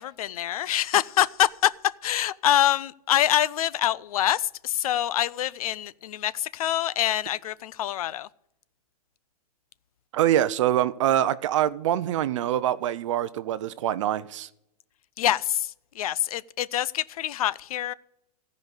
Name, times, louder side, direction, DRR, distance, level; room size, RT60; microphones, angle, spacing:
voice 1, 0.0-1.7 2.0-8.3 15.2-17.9, left 12 dB, 65° left, 0.5 m, -25 dB
voice 2, 10.1-14.5, right 12 dB, 50° right, 0.6 m, -24 dB
15.0 x 5.3 x 8.1 m
supercardioid pair, 165°, 20 cm